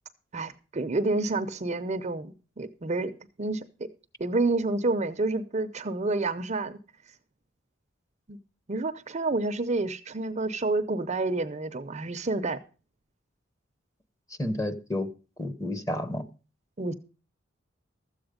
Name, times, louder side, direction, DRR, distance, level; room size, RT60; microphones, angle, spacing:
voice 1, 0.3-3.1 3.4-3.7 4.2-6.8 8.3-8.4 8.7-12.6 16.8-16.9, right 2 dB, 35° right, 0.6 m, -29 dB
voice 2, 14.4-15.1 15.4-16.2, left 1 dB, 15° left, 1.0 m, -30 dB
13.5 x 7.9 x 5.1 m
head